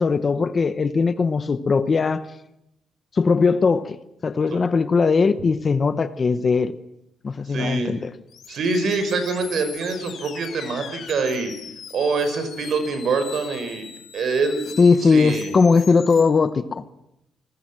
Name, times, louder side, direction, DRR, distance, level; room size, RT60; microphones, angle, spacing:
voice 1, 0.0-2.3 3.1-4.0 4.2-6.7 7.2-8.1 14.8-16.9, left 4 dB, 25° left, 0.9 m, -19 dB
voice 2, 7.5-7.9 8.5-11.5 11.9-13.9 14.1-14.7 15.0-15.5, right 4 dB, 50° right, 5.6 m, -25 dB
sound 1, 8.3-16.3, left 7 dB, 50° left, 3.7 m, -40 dB
29.5 x 21.0 x 7.6 m
cardioid pair, 170°, 0 cm